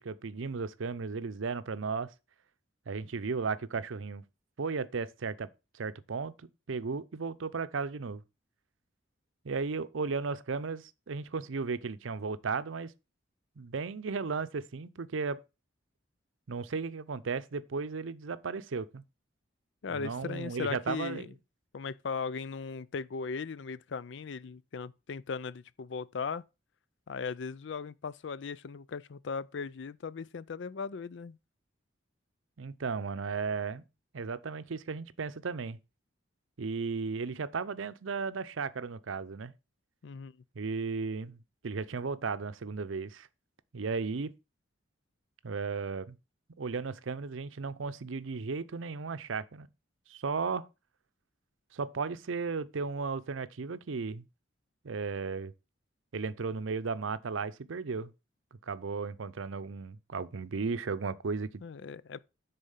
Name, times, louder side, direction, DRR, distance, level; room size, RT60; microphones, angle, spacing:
voice 1, 0.0-2.1 2.9-4.2 4.6-5.5 5.7-8.2 9.4-12.9 13.6-15.4 16.5-19.0 19.9-21.3 32.6-33.8 34.1-35.8 36.6-39.5 40.6-43.3 43.7-44.3 45.4-46.2 46.6-49.7 50.1-50.7 51.7-54.3 54.8-55.5 56.1-58.1 58.5-61.6, right 4 dB, 80° right, 0.6 m, -35 dB
voice 2, 19.8-21.3 21.7-26.4 27.1-31.4 40.0-40.3 61.6-62.2, left 5 dB, 65° left, 0.4 m, -38 dB
10.0 x 4.1 x 5.6 m
head